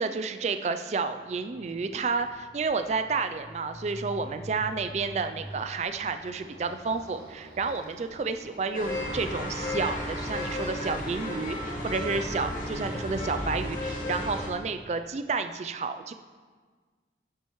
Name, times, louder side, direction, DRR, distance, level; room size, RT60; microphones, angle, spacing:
voice 1, 0.0-16.1, right 4 dB, 40° right, 9 dB, 0.3 m, -31 dB
Motorcycle, 1.2-13.9, equal, 60° right, 1.6 m, -48 dB
sound 1, 8.7-14.5, left 1 dB, 45° left, 2.2 m, -33 dB
11.5 x 10.0 x 3.1 m, 1.5 s
head